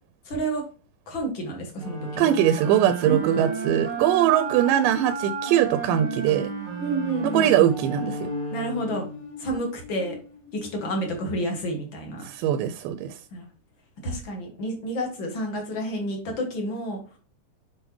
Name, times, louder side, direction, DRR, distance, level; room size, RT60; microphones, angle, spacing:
voice 1, 0.3-0.6 1.1-2.3 3.0-3.7 6.8-7.7 8.5-9.1 9.4-10.2 10.5-12.3 13.3-13.5 14.0-17.2, right 1 dB, 45° left, 2 dB, 1.8 m, -30 dB
sound 1, 1.8-9.2, right 3 dB, 45° right, 1.1 m, -34 dB
voice 2, 2.2-6.5 7.2-8.3 12.2-13.2, right 11 dB, 85° right, 11 dB, 2.1 m, -21 dB
sound 2, 6.0-12.4, left 1 dB, 80° left, 1.3 m, -38 dB
7.8 x 4.8 x 3.1 m, 0.37 s
omnidirectional pair, 3.9 m